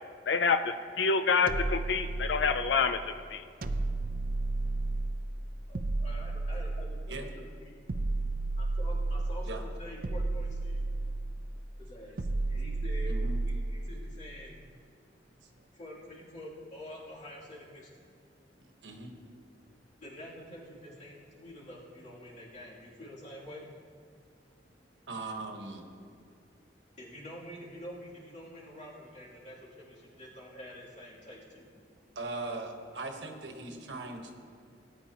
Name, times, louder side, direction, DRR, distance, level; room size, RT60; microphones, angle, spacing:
voice 1, 0.3-3.4, left 5 dB, 75° left, 8 dB, 0.4 m, -27 dB
sound 1, 1.5-2.8 3.6-5.2 5.7-7.2 7.9-9.5 10.0-11.4 12.2-13.8, right 2 dB, 55° right, 0.6 m, -32 dB
voice 2, 5.7-8.0 8.6-10.9 11.8-12.2 12.5-13.1 13.7-14.7 15.7-18.1 20.0-23.7 27.0-31.8, equal, 45° left, -6 dB, 3.0 m, -47 dB
voice 3, 18.6-19.2 25.1-25.8 32.1-34.3, right 3 dB, 85° right, 3 dB, 1.3 m, -39 dB
18.5 x 9.4 x 3.0 m, 2.3 s
head